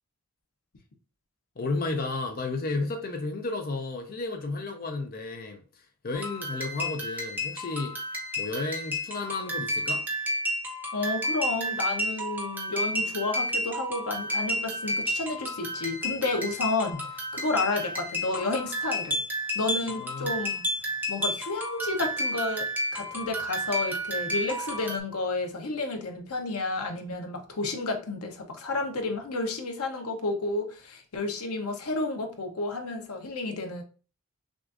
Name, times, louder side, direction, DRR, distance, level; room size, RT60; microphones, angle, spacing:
voice 1, 1.6-8.0 8.4-10.0 19.9-20.4, left 3 dB, 40° left, 0.5 m, -33 dB
sound 1, 6.1-25.0, equal, 10° right, 0.7 m, -31 dB
voice 2, 10.9-17.1 17.3-19.2 19.5-20.6 21.1-33.8, left 3 dB, 90° left, 0.8 m, -31 dB
6.1 x 2.5 x 2.4 m
head